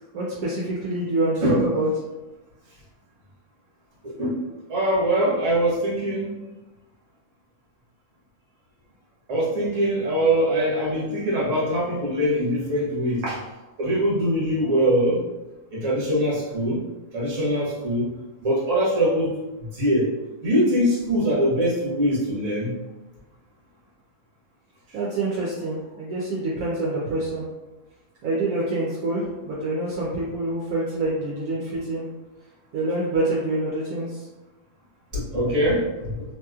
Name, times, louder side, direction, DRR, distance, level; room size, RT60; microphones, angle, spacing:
voice 1, 0.1-1.9 24.9-27.5 28.2-32.1 32.7-34.3, right 2 dB, 75° right, -6 dB, 1.1 m, -26 dB
voice 2, 4.0-4.4 4.7-6.3 9.3-13.4 13.8-15.2 15.7-16.8 17.1-18.1 18.4-19.4 19.7-20.1 20.4-22.7 35.1-36.2, equal, 60° right, -6 dB, 1.4 m, -22 dB
2.9 x 2.9 x 2.3 m, 1.1 s
omnidirectional pair, 1.6 m